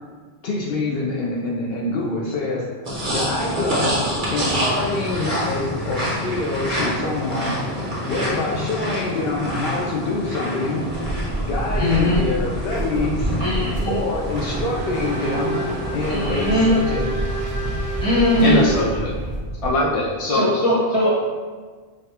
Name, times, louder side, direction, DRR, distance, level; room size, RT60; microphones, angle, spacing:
voice 1, 0.4-2.6 3.1-4.0 4.3-7.6 8.1-10.9 11.4-13.4 13.9-15.6 15.9-17.0, left 2 dB, 70° left, -3 dB, 0.8 m, -25 dB
sound 1, 2.8-16.6, equal, 50° right, 1.3 m, -27 dB
sound 2, 10.9-19.7, right 1 dB, 25° right, 0.7 m, -28 dB
voice 2, 11.8-12.2 13.4-14.0 16.1-16.7 18.0-18.6 20.3-21.1, left 1 dB, 25° left, -7 dB, 1.2 m, -20 dB
Race car auto racing / Accelerating revving vroom, 13.9-19.4, right 2 dB, 70° right, 1.0 m, -31 dB
voice 3, 18.4-19.1 19.6-20.5, left 1 dB, 45° left, -5 dB, 0.5 m, -21 dB
5.3 x 2.3 x 2.9 m, 1.5 s
omnidirectional pair, 1.1 m